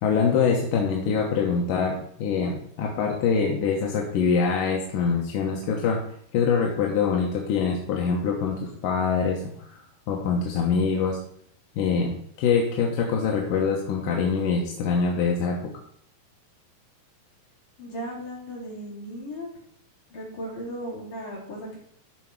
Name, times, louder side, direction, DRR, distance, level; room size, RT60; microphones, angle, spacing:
voice 1, 0.0-6.0 6.3-9.4 10.1-11.2 11.8-15.7, left 5 dB, 70° left, 0 dB, 2.5 m, -24 dB
voice 2, 17.8-19.5 20.1-21.8, equal, 55° left, -5 dB, 4.9 m, -36 dB
13.5 x 4.9 x 4.7 m, 0.67 s
omnidirectional pair, 4.5 m